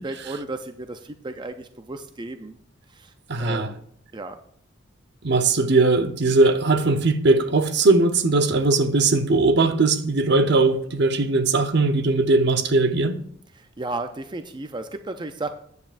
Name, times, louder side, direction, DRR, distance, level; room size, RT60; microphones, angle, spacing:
voice 1, 0.0-2.6 2.9-3.8 4.1-4.4 13.5-15.5, right 2 dB, 25° right, 0.5 m, -34 dB
voice 2, 3.3-3.7 5.2-13.2, right 3 dB, 60° right, 0.8 m, -19 dB
14.5 x 9.5 x 2.5 m
head